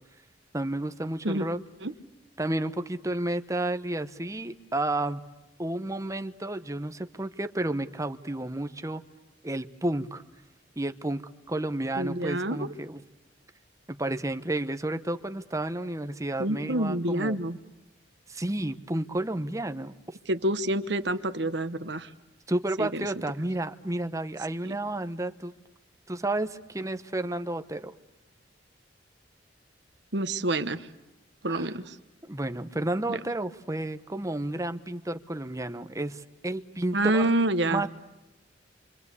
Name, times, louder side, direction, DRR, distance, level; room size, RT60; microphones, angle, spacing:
voice 1, 0.5-1.6 2.4-5.2 5.6-9.0 9.4-10.2 10.8-13.0 13.9-17.4 18.3-20.2 22.5-25.5 26.1-27.9 31.5-31.7 32.2-37.3 37.6-37.9, right 1 dB, 15° right, 9 dB, 1.0 m, -31 dB
voice 2, 12.0-12.6 16.4-17.6 20.3-22.1 22.8-23.0 24.7-24.8 30.1-30.9 31.4-32.0 33.1-33.2 36.9-37.8, right 1 dB, 65° right, 11 dB, 1.2 m, -27 dB
27.5 x 25.5 x 8.4 m, 0.99 s
head